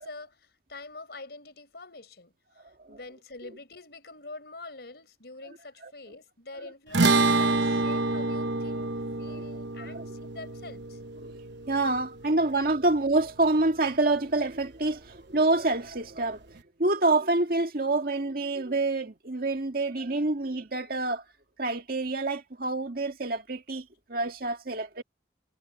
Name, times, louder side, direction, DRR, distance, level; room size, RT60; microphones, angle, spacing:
voice 1, 0.0-11.0, left 3 dB, 65° left, 5.0 m, -45 dB
sound 1, 6.9-13.5, right 3 dB, 85° right, 1.0 m, -28 dB
voice 2, 11.7-16.5 16.8-21.2 21.6-25.0, right 2 dB, 55° right, 2.0 m, -27 dB
head